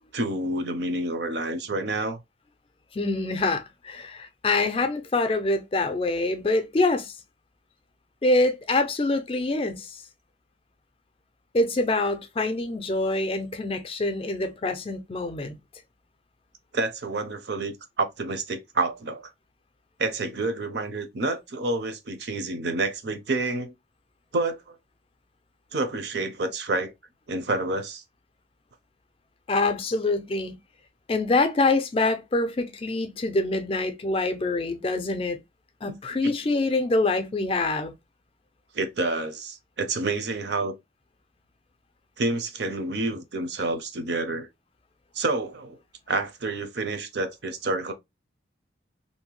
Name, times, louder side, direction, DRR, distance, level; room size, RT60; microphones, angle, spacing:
voice 1, 0.1-2.2 16.7-19.3 20.0-23.7 24.3-24.8 25.7-26.9 27.3-28.0 35.8-35.9 36.2-36.3 38.7-40.7 42.2-44.5 45.1-45.8 46.1-47.9, right 2 dB, 65° right, 0.6 m, -28 dB
voice 2, 2.9-7.2 8.2-10.0 11.5-15.6 29.5-30.6 31.1-35.4 35.8-37.9, left 2 dB, 30° left, 0.4 m, -25 dB
2.7 x 2.1 x 3.0 m
head